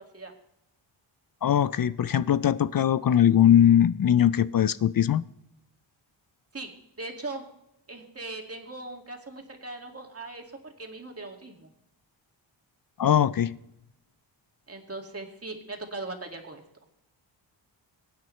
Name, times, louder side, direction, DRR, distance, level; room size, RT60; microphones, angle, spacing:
voice 1, 1.4-5.2 13.0-13.6, left 10 dB, 50° left, 0.4 m, -21 dB
voice 2, 7.0-7.5 7.9-11.7 14.7-16.6, right 2 dB, 30° right, 2.3 m, -39 dB
22.5 x 9.4 x 3.2 m
wide cardioid pair, 100°, 46 cm